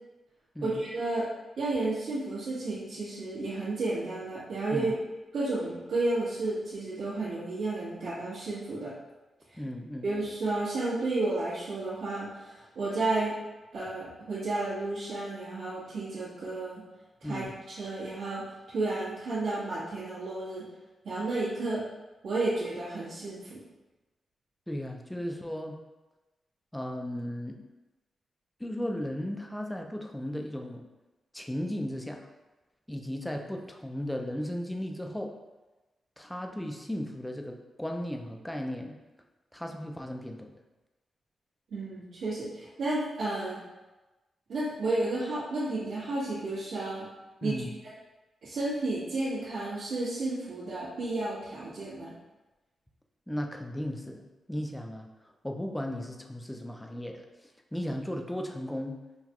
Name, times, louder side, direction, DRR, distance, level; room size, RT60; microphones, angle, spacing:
voice 1, 0.6-1.2 1.6-4.9 5.3-8.9 9.5-9.6 10.0-13.3 13.7-16.8 17.2-20.6 21.0-21.8 22.2-23.6 41.7-43.6 44.5-47.1 47.4-47.6 48.4-52.1, right 2 dB, 80° right, -12 dB, 1.3 m, -32 dB
voice 2, 9.6-10.1 17.2-17.5 24.7-25.8 26.7-27.6 28.6-30.8 31.3-32.2 32.9-35.3 36.2-38.9 39.5-40.5 47.4-47.7 53.3-55.1 55.4-57.2 57.7-59.0, left 1 dB, 5° left, 3 dB, 0.4 m, -35 dB
5.6 x 2.3 x 2.9 m, 1.1 s
wide cardioid pair, 155°, 0 cm